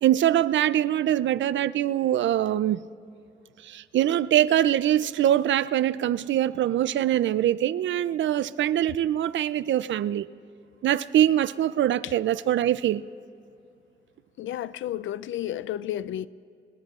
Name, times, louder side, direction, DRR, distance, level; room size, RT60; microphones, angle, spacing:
voice 1, 0.0-2.9 3.6-10.3 10.8-13.0, right 12 dB, 75° right, 0.4 m, -23 dB
voice 2, 14.4-16.3, left 12 dB, 85° left, 0.4 m, -32 dB
25.0 x 20.0 x 2.4 m
cardioid pair, 115°, 20 cm